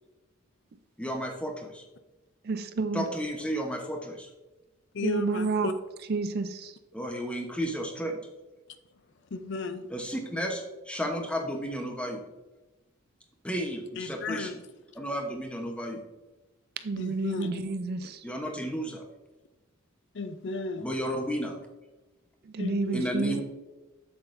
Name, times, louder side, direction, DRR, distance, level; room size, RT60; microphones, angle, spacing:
voice 1, 1.0-1.8 2.9-4.3 6.9-8.2 9.9-12.2 13.4-14.5 15.0-16.0 18.2-19.0 20.8-21.6 22.9-23.4, equal, 5° left, 0.9 m, -33 dB
voice 2, 2.4-3.1 5.0-5.7 6.1-6.8 16.8-18.2 22.4-23.4, right 3 dB, 45° right, 0.4 m, -30 dB
voice 3, 4.9-5.7 9.3-9.9 14.0-14.6 17.0-17.6 20.1-20.9 22.6-23.3, left 3 dB, 55° left, 0.5 m, -34 dB
7.9 x 7.7 x 2.6 m
head